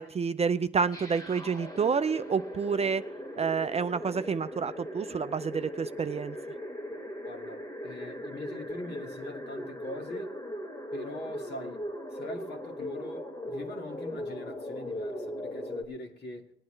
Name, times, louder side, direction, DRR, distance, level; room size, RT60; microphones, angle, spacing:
voice 1, 0.0-3.0 3.4-6.4, right 5 dB, 30° right, 0.4 m, -29 dB
sound 1, 0.9-15.8, equal, 20° left, 2.0 m, -39 dB
voice 2, 7.3-10.4 10.9-16.5, left 2 dB, 55° left, 2.0 m, -42 dB
19.5 x 9.4 x 3.2 m
cardioid pair, 90°, 20 cm